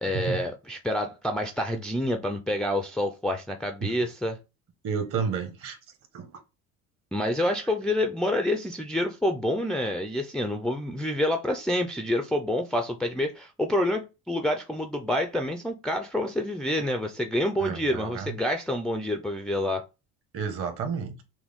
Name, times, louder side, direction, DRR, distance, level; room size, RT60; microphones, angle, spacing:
voice 1, 0.0-4.4 7.1-19.8, left 1 dB, 5° left, 0.3 m, -28 dB
voice 2, 4.8-5.8 6.1-6.3 17.6-18.3 20.3-21.2, right 6 dB, 50° right, 1.2 m, -31 dB
6.0 x 2.1 x 3.5 m
cardioid pair, 150°, 30 cm